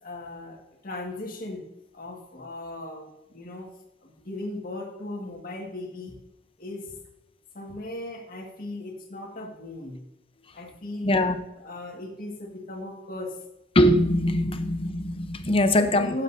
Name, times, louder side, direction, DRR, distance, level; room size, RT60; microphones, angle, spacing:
voice 1, 0.0-1.7 1.9-3.7 4.0-6.2 6.6-7.0 7.5-10.0 10.5-11.1 11.6-13.4 15.8-16.2, left 2 dB, 50° left, 2 dB, 1.9 m, -37 dB
voice 2, 11.0-11.4 13.7-16.1, left 1 dB, 30° left, 9 dB, 0.8 m, -22 dB
15.5 x 7.7 x 2.7 m, 0.90 s
head